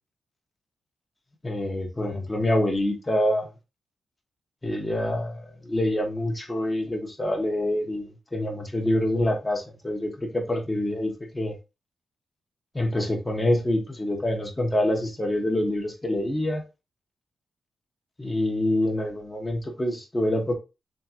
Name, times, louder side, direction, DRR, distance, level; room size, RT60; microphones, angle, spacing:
voice 1, 1.4-3.5 4.6-8.0 8.3-11.5 12.7-16.6 18.2-20.5, left 1 dB, 20° left, 1.1 m, -26 dB
3.7 x 3.4 x 2.9 m
cardioid pair, 90°, 0 cm